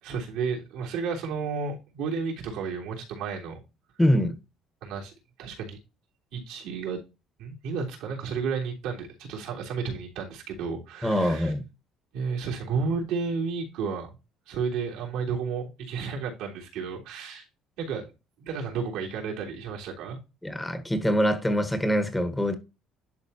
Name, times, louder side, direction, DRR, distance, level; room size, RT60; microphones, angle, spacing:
voice 1, 0.0-3.6 4.8-5.1 5.4-5.8 6.3-7.0 7.4-11.5 12.1-14.1 14.5-17.4 17.8-18.0 18.5-20.2, right 5 dB, 85° right, 3.2 m, -32 dB
voice 2, 4.0-4.3 11.0-11.6 20.4-22.6, equal, 10° left, 1.2 m, -24 dB
11.0 x 4.1 x 2.8 m
cardioid pair, 110°, 0 cm